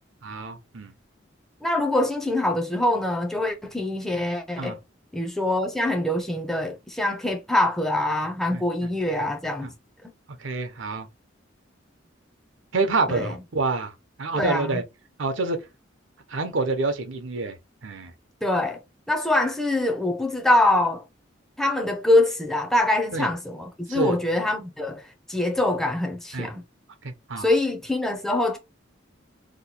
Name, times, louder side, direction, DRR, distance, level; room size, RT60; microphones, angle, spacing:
voice 1, 0.2-0.9 4.6-4.8 8.5-8.6 9.6-9.7 10.4-11.1 12.7-13.9 14.2-14.8 15.2-15.6 16.3-17.6 17.8-18.1 23.1-23.3 23.9-24.2 26.3-26.5 27.0-27.5, right 3 dB, 80° right, 0.7 m, -27 dB
voice 2, 1.6-4.8 5.1-9.7 13.1-13.3 14.3-14.8 18.4-18.8 19.1-21.0 21.6-26.6 27.4-28.6, left 1 dB, ahead, 0.5 m, -24 dB
2.9 x 2.2 x 4.2 m
head